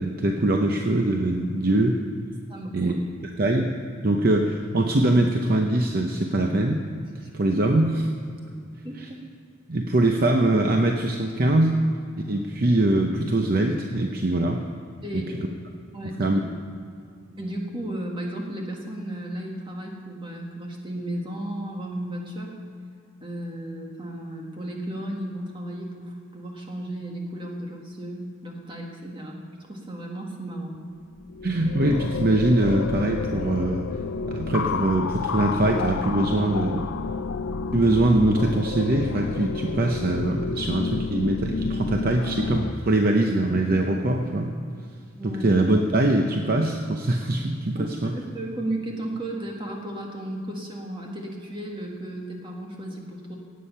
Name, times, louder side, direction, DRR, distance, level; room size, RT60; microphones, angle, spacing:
voice 1, 0.0-2.0 2.7-3.0 3.4-3.7 4.0-6.8 7.3-8.1 9.0-9.1 9.7-11.8 12.3-14.6 15.1-15.2 16.2-16.4 31.4-33.9 34.3-36.9 37.7-44.5 45.2-48.1, right 1 dB, 45° right, 3 dB, 0.7 m, -22 dB
voice 2, 2.5-2.9 7.2-7.3 8.8-9.0 15.0-15.4 15.9-16.4 17.4-22.5 23.2-29.4 29.7-30.8 45.2-45.4 47.8-53.4, right 1 dB, 25° right, 0 dB, 1.8 m, -34 dB
sound 1, 31.1-42.7, left 4 dB, 65° left, 0.4 m, -30 dB
17.0 x 8.5 x 5.6 m, 2.4 s
head